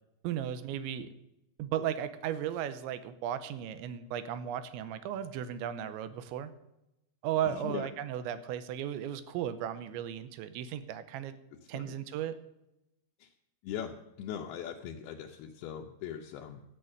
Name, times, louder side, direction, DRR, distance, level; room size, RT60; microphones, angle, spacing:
voice 1, 0.2-1.1 1.6-6.5 7.2-11.4 11.7-12.4, right 10 dB, 85° right, 12 dB, 3.0 m, -35 dB
voice 2, 7.5-7.9 11.7-12.0 13.2-13.3 13.6-16.6, left 9 dB, 80° left, 1 dB, 2.3 m, -40 dB
12.5 x 8.8 x 6.5 m, 0.89 s
omnidirectional pair, 5.4 m